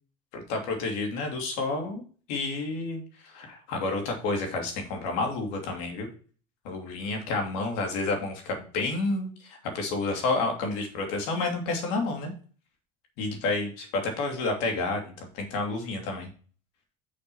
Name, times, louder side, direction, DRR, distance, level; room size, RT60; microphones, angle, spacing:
voice 1, 0.3-2.0 2.3-6.1 6.6-12.3 13.2-16.3, left 3 dB, 75° left, 3 dB, 2.8 m, -30 dB
6.7 x 5.4 x 5.6 m, 0.41 s
supercardioid pair, 125°, 17 cm